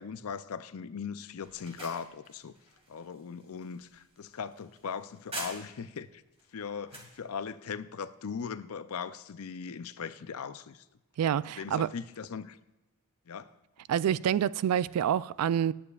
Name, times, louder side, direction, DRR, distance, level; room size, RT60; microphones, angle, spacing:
voice 1, 0.0-2.6 2.9-6.2 6.5-10.8 11.3-12.6 13.3-13.5, left 6 dB, 70° left, 0.5 m, -39 dB
sound 1, 1.4-6.0 6.4-7.2, right 2 dB, 25° right, 2.1 m, -45 dB
voice 2, 11.2-11.9 13.9-15.7, right 9 dB, 85° right, 0.3 m, -27 dB
19.5 x 8.7 x 2.4 m
head